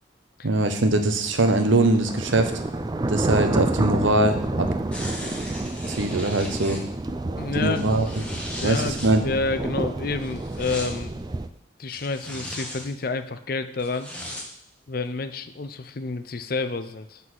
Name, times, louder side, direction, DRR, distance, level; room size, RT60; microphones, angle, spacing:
voice 1, 0.4-2.5 3.1-4.7 5.9-6.8 7.5-8.1 8.6-9.3, right 2 dB, 80° right, 7 dB, 0.9 m, -22 dB
sound 1, 1.2-11.5, right 2 dB, 20° right, 0.3 m, -29 dB
sound 2, 4.9-6.8 7.6-9.1 10.2-10.9 11.9-12.9 13.8-14.4 15.0-15.1, left 1 dB, 5° left, 1.0 m, -37 dB
voice 2, 7.4-8.0 8.6-11.2 11.8-14.1 14.9-17.2, left 3 dB, 50° left, 10 dB, 0.5 m, -29 dB
7.5 x 4.1 x 6.2 m, 0.72 s
head